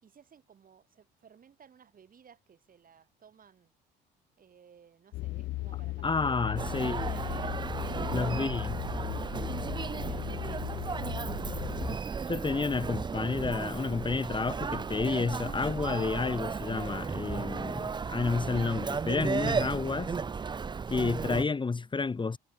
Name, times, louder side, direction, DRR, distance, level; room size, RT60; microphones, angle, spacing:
voice 1, 0.0-3.7 4.4-9.1 9.7-11.5 12.2-12.9, right 7 dB, 45° right, 7.0 m, -56 dB
sound 1, 5.1-12.0, left 18 dB, 65° left, 0.6 m, -37 dB
voice 2, 6.0-7.1 8.1-8.8 12.3-20.1 20.9-22.4, left 4 dB, 25° left, 1.5 m, -30 dB
Human voice, 6.6-21.4, right 5 dB, 20° right, 0.6 m, -34 dB
supercardioid pair, 70°, 20 cm